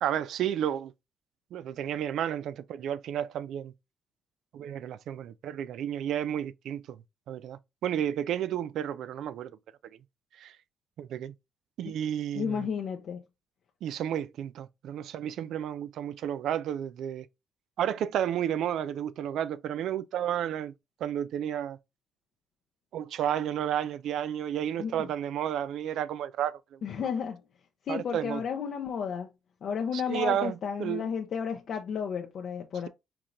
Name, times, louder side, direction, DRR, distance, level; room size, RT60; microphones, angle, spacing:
voice 1, 0.0-0.9 1.5-3.7 4.5-7.0 7.3-9.5 10.4-10.5 11.0-11.3 11.8-12.7 13.8-17.3 17.8-20.7 21.0-21.8 22.9-26.6 27.9-28.4 29.9-30.5 30.8-31.1, right 10 dB, 75° right, 0.4 m, -32 dB
voice 2, 12.3-13.2 24.8-25.1 26.8-27.4 27.9-29.3 29.6-32.9, left 7 dB, 65° left, 0.6 m, -32 dB
4.6 x 3.7 x 2.5 m
cardioid pair, 90°, 0 cm